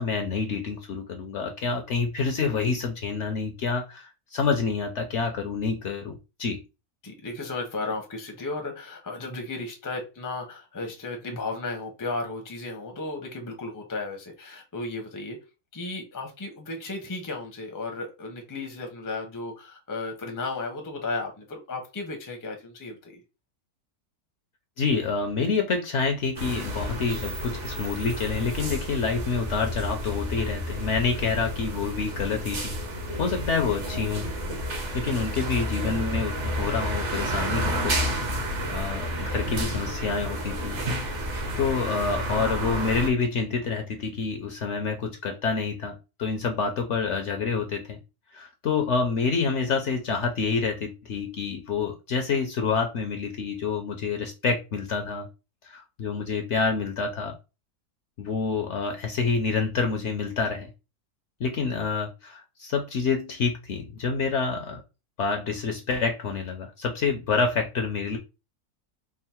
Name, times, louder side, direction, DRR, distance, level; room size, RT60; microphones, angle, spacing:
voice 1, 0.0-6.6 24.8-32.7 33.2-34.3 34.9-38.1 38.7-40.8 41.6-48.0 48.3-55.3 55.6-57.4 58.2-60.7 61.4-64.8 65.2-68.2, left 5 dB, 60° left, 4 dB, 0.8 m, -27 dB
voice 2, 7.0-15.4 15.7-23.2, left 3 dB, 20° left, 3 dB, 0.5 m, -34 dB
sound 1, 26.4-43.1, equal, 55° right, 1.1 m, -30 dB
3.6 x 2.0 x 4.3 m, 0.28 s
omnidirectional pair, 1.6 m